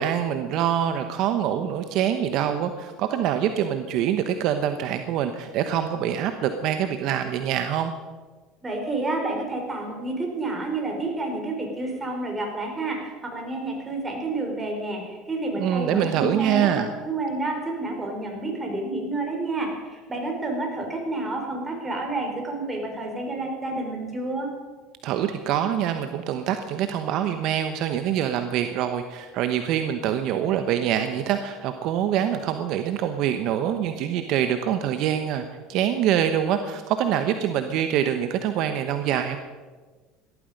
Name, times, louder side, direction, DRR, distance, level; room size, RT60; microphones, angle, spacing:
voice 1, 0.0-7.9 15.6-16.9 25.0-39.4, right 10 dB, 60° right, 8 dB, 1.0 m, -25 dB
voice 2, 8.6-24.5, right 2 dB, 20° right, 1 dB, 5.3 m, -29 dB
17.5 x 13.0 x 5.3 m, 1.4 s
supercardioid pair, 95°, 0 cm